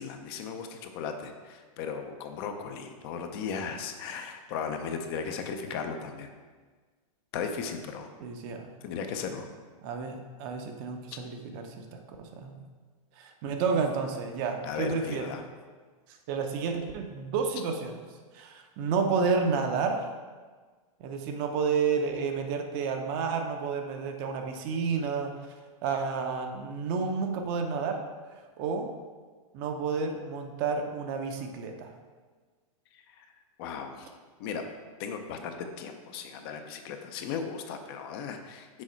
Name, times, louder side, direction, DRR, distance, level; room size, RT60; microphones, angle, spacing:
voice 1, 0.0-6.3 7.3-8.1 8.8-9.5 11.1-11.2 14.6-15.4 33.1-33.3 33.6-34.1 34.4-34.6 35.0-38.8, left 6 dB, 45° left, 6 dB, 0.6 m, -36 dB
voice 2, 8.2-8.7 9.8-12.6 13.2-15.3 16.1-18.0 18.3-20.1 21.0-25.5 25.8-28.0 28.6-28.9 29.5-31.9, right 5 dB, 40° right, 4 dB, 0.6 m, -30 dB
6.3 x 4.2 x 4.4 m, 1.4 s
supercardioid pair, 155°, 19 cm